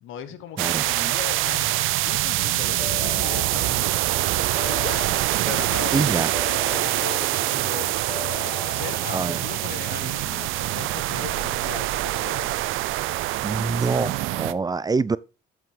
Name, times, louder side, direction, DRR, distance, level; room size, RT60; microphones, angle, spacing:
voice 1, 0.0-4.0 4.7-5.1 5.4-8.0 8.7-12.7, left 9 dB, 85° left, 1.2 m, -38 dB
sound 1, 0.6-14.5, right 16 dB, 90° right, 0.5 m, -25 dB
sound 2, 2.4-10.0, right 8 dB, 50° right, 0.8 m, -42 dB
Keyboard (musical) / Ringtone, 2.8-4.1 4.6-5.9 6.3-7.7 8.1-9.4, left 5 dB, 30° left, 1.2 m, -38 dB
voice 2, 5.9-6.3 9.1-9.4 13.4-15.2, right 4 dB, 20° right, 0.4 m, -25 dB
7.6 x 5.9 x 5.0 m
cardioid pair, 90°, 20 cm